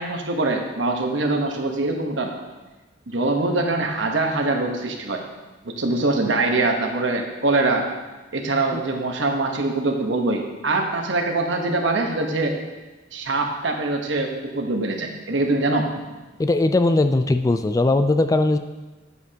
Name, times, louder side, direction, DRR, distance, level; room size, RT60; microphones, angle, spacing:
voice 1, 0.0-2.4 3.1-5.2 5.6-7.9 8.3-12.5 13.1-15.9, right 2 dB, 80° right, 3 dB, 1.1 m, -23 dB
voice 2, 16.4-18.6, left 2 dB, 20° left, 9 dB, 0.3 m, -19 dB
9.6 x 8.1 x 2.8 m, 1.2 s
head